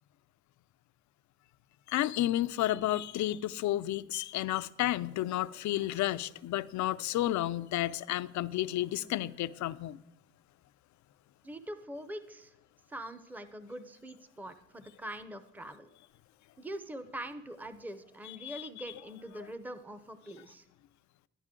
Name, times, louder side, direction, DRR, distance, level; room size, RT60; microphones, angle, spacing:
voice 1, 1.9-10.0 18.2-18.7 19.4-19.5, left 14 dB, 70° left, 0.5 m, -32 dB
voice 2, 11.4-12.5 12.9-15.9 16.6-20.6, right 1 dB, 5° right, 0.7 m, -43 dB
11.0 x 10.5 x 3.7 m
cardioid pair, 90°, 30 cm